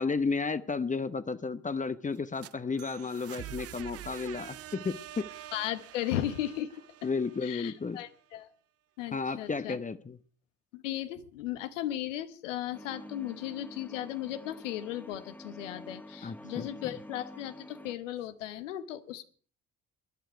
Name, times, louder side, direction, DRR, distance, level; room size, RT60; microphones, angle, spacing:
voice 1, 0.0-5.3 7.0-8.0 9.1-10.2 16.2-16.7, left 4 dB, 20° left, 12 dB, 1.0 m, -33 dB
sound 1, 2.1-8.0, right 13 dB, 40° right, 0.6 m, -46 dB
voice 2, 5.5-6.7 7.4-8.5 9.0-9.8 10.7-19.2, left 12 dB, 80° left, 11 dB, 1.2 m, -36 dB
sound 2, 12.7-18.0, left 1 dB, 5° left, 1.4 m, -48 dB
21.0 x 11.0 x 4.6 m, 0.43 s
hypercardioid pair, 55°, 37 cm